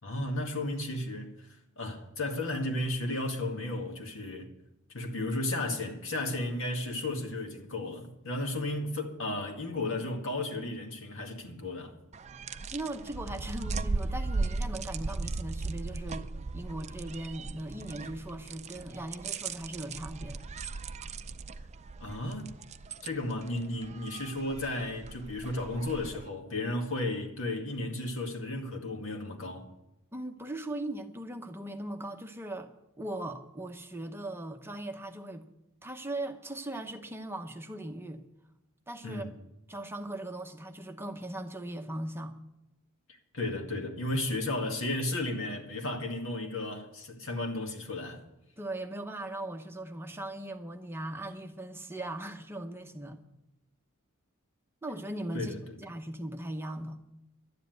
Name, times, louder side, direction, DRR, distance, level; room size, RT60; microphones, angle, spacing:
voice 1, 0.0-4.5 4.9-11.9 22.0-22.6 23.0-29.7 39.0-39.3 43.1-48.2 55.3-55.8, left 2 dB, 65° left, 2.1 m, -34 dB
sound 1, 12.1-26.3, right 3 dB, 30° right, 0.5 m, -37 dB
voice 2, 12.5-16.3 16.5-20.5 30.1-32.7 33.0-35.4 35.8-38.2 38.9-39.3 39.7-42.3 48.6-53.2 54.8-57.0, right 1 dB, 10° right, 0.9 m, -39 dB
12.0 x 10.0 x 9.3 m
head